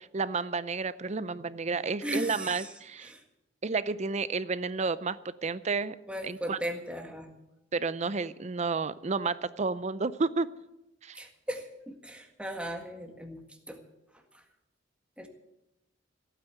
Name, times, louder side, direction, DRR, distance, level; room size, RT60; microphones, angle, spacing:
voice 1, 0.1-3.1 3.6-6.0 6.2-6.6 7.7-10.5 11.0-11.2, right 4 dB, 35° right, 16 dB, 0.5 m, -31 dB
voice 2, 2.0-2.7 3.0-3.2 6.1-7.3 11.2-13.4 13.7-13.8 15.2-15.3, equal, 5° right, 4 dB, 1.7 m, -37 dB
15.5 x 9.3 x 8.2 m, 0.93 s
head